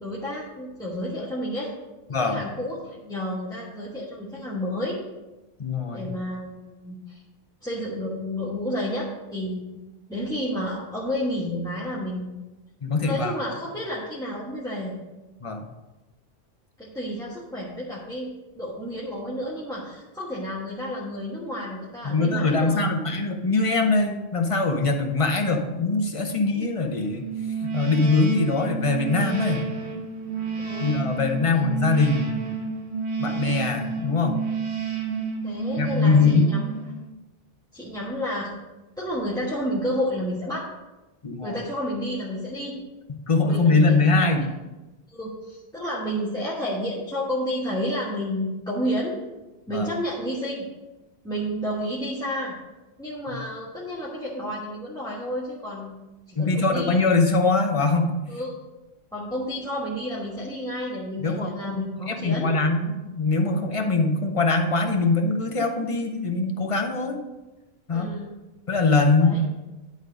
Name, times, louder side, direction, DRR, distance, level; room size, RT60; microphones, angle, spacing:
voice 1, 0.0-1.7 2.2-5.0 5.9-7.2 7.6-9.6 10.1-12.3 13.0-15.0 16.8-22.8 30.6-31.0 31.4-31.7 35.4-36.6 37.7-38.5 39.0-40.7 41.4-42.8 43.4-44.3 45.1-49.1 49.7-50.7 51.2-52.6 53.0-56.0 56.3-57.0 58.3-58.6 59.1-62.5 67.9-68.3 69.2-69.4, equal, 5° left, -8 dB, 1.2 m, -31 dB
voice 2, 2.1-2.4 5.6-6.1 12.8-13.3 15.4-15.6 22.0-27.3 27.6-29.6 30.8-32.4 33.2-34.4 35.8-36.5 41.2-41.6 43.1-44.5 49.7-49.9 56.4-58.1 61.2-67.2 67.9-68.1 68.7-69.4, left 3 dB, 30° left, 4 dB, 0.8 m, -22 dB
sound 1, 27.2-37.1, right 5 dB, 65° right, 1.3 m, -30 dB
10.5 x 4.0 x 5.0 m, 1.1 s
omnidirectional pair, 1.2 m